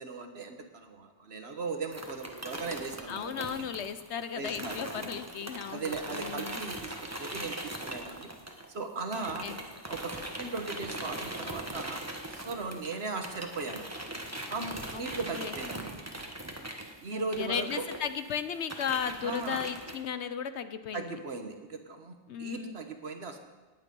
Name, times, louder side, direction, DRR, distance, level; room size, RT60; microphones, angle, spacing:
voice 1, 0.0-3.7 4.3-4.8 5.7-6.9 7.2-8.3 8.7-9.5 9.9-12.0 12.3-13.9 14.5-16.0 17.0-17.9 19.2-19.6 20.9-23.4, right 4 dB, 65° right, 6 dB, 1.5 m, -38 dB
sound 1, 1.9-8.8 9.1-20.0, right 1 dB, 15° right, 1.3 m, -41 dB
voice 2, 3.1-6.6 9.1-9.6 14.9-15.0 15.3-15.6 17.1-21.2 22.3-22.8, left 7 dB, 75° left, 11 dB, 1.1 m, -35 dB
18.5 x 9.0 x 5.4 m, 1.2 s
omnidirectional pair, 1.2 m